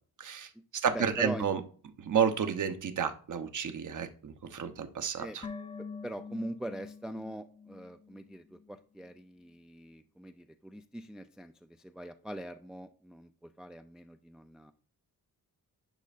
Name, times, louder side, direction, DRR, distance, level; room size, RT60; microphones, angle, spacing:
voice 1, 0.2-0.5 0.8-1.6 2.0-5.4, right 7 dB, 55° right, 8 dB, 1.0 m, -31 dB
voice 2, 0.9-1.5 5.2-5.4 6.0-14.7, right 1 dB, ahead, 8 dB, 0.4 m, -42 dB
sound 1, 5.4-8.7 9.0-9.1, left 5 dB, 15° left, 0.9 m, -46 dB
10.5 x 5.2 x 2.5 m, 0.43 s
cardioid pair, 100°, 37 cm